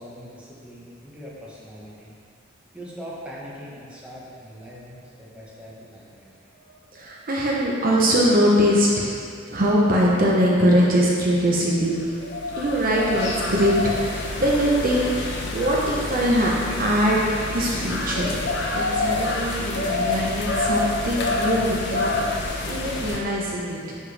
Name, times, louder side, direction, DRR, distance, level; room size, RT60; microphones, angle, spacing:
voice 1, 0.0-2.1 2.7-6.4, equal, 5° right, -7 dB, 1.1 m, -41 dB
voice 2, 6.9-9.0 9.5-12.1 12.6-22.2 22.7-24.0, equal, 45° right, -4 dB, 0.9 m, -22 dB
sound 1, 12.0-23.2, left 2 dB, 60° left, 0.8 m, -27 dB
9.8 x 4.5 x 3.4 m, 2.3 s
head